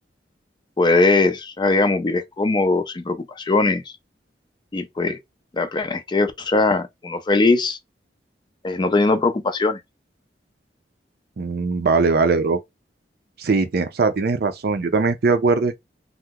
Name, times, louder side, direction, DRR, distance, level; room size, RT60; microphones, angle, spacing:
voice 1, 0.8-3.8 4.7-5.2 5.5-7.8 8.6-9.8, left 3 dB, 25° left, 0.4 m, -20 dB
voice 2, 11.4-12.6 13.4-15.8, right 4 dB, 60° right, 0.5 m, -20 dB
2.8 x 2.0 x 3.4 m
head